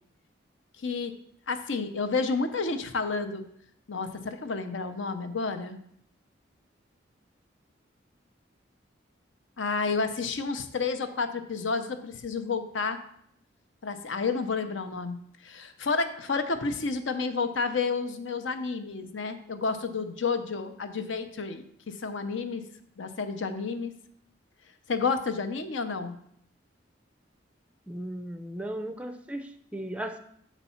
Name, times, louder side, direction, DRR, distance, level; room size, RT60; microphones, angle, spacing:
voice 1, 0.8-1.1 1.5-3.5 3.9-5.8 9.6-13.0 13.8-22.6 23.0-23.9 24.9-26.2, left 4 dB, 80° left, 9 dB, 0.7 m, -30 dB
voice 2, 27.9-30.2, right 1 dB, 5° right, 8 dB, 0.4 m, -36 dB
7.1 x 4.1 x 5.6 m, 0.69 s
head